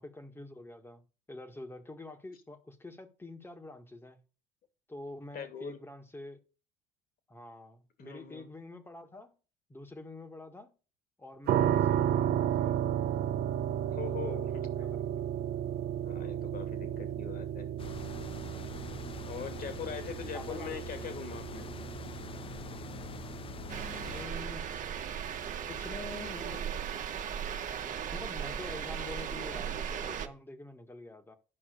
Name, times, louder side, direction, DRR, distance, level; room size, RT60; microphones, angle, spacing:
voice 1, 0.0-4.2 4.9-6.4 7.3-9.3 9.7-10.7 11.2-12.8 14.1-14.5 14.8-15.3 18.6-19.1 20.3-21.0 24.0-24.7 25.7-26.7 28.1-31.4, left 2 dB, 10° left, 1.7 m, -47 dB
voice 2, 5.3-5.8 8.0-8.5 13.9-14.5 16.0-17.7 19.3-21.7, left 7 dB, 50° left, 2.7 m, -41 dB
sound 1, 11.5-26.3, right 10 dB, 60° right, 1.0 m, -34 dB
sound 2, 17.8-24.3, left 7 dB, 30° left, 0.6 m, -45 dB
sound 3, 23.7-30.3, right 8 dB, 45° right, 1.5 m, -37 dB
11.5 x 5.5 x 6.6 m
supercardioid pair, 100°, 18 cm